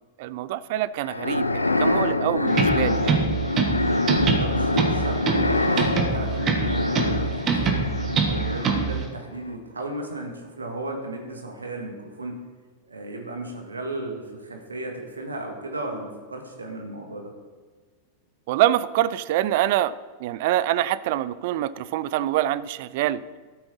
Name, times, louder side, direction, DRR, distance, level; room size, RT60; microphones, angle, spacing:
voice 1, 0.2-3.2 18.5-19.9 20.2-23.2, right 13 dB, 50° right, 17 dB, 0.4 m, -25 dB
sound 1, 1.0-9.1, left 2 dB, 80° left, 0.5 m, -25 dB
sound 2, 2.5-9.0, right 5 dB, 30° right, 1.5 m, -25 dB
voice 2, 4.1-7.9 8.2-12.4 12.9-17.3, right 2 dB, 75° right, 3 dB, 1.8 m, -35 dB
13.0 x 7.7 x 4.1 m, 1.5 s
figure-of-eight pair, 90°, 0 cm